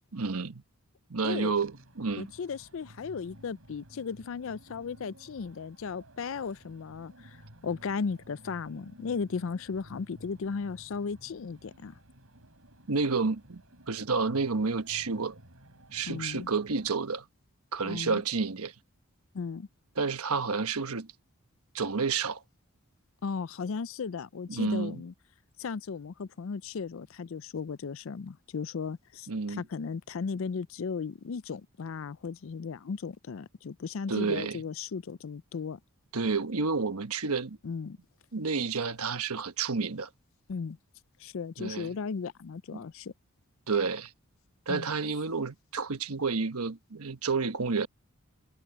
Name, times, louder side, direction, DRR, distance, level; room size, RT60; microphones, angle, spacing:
voice 1, 0.1-0.6 1.1-2.3 12.9-13.6 13.9-15.4 15.9-17.2 17.7-18.7 20.0-21.1 21.7-22.4 24.5-25.0 29.3-29.6 34.1-34.6 36.1-37.6 38.3-40.1 41.6-41.9 42.7-42.8 43.7-44.1 44.7-47.9, right 4 dB, 80° right, 1.2 m, -30 dB
sound 1, 1.5-16.9, right 1 dB, 65° right, 6.6 m, -54 dB
voice 2, 2.2-7.4 7.6-12.0 16.1-16.5 17.8-18.2 19.3-19.7 23.2-25.1 25.6-35.8 37.6-38.0 40.5-40.8 41.2-43.1 44.7-44.9, left 5 dB, 60° left, 0.4 m, -36 dB
head